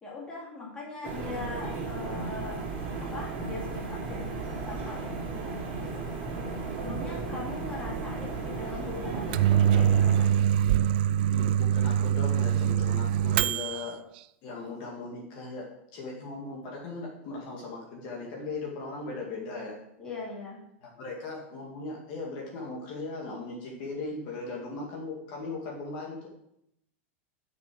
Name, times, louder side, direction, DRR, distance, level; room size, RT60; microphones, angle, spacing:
voice 1, 0.0-2.6 3.0-6.1 6.8-10.3 20.0-20.6, left 3 dB, 15° left, -4 dB, 2.6 m, -40 dB
sound 1, 1.0-10.2, right 4 dB, 30° right, 3.5 m, -35 dB
voice 2, 8.4-8.7 9.2-9.4 9.8-10.0 11.3-14.0 14.4-19.8 20.8-26.3, left 3 dB, 40° left, -1 dB, 2.2 m, -38 dB
Microwave oven, 9.1-13.9, right 10 dB, 45° right, 0.4 m, -24 dB
9.1 x 6.7 x 6.3 m, 0.78 s
supercardioid pair, 175°, 7 cm